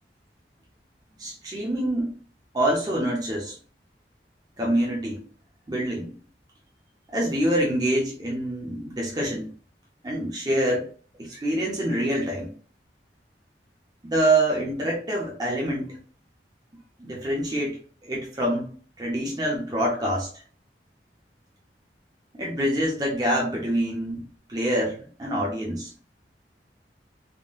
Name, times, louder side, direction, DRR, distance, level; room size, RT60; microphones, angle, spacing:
voice 1, 1.2-2.1 2.5-3.6 4.6-5.2 5.7-6.1 7.1-9.5 10.0-10.9 11.2-12.5 14.0-16.0 17.0-20.3 22.3-25.9, right 1 dB, 20° right, -3 dB, 0.6 m, -26 dB
3.5 x 2.1 x 2.4 m, 0.42 s
head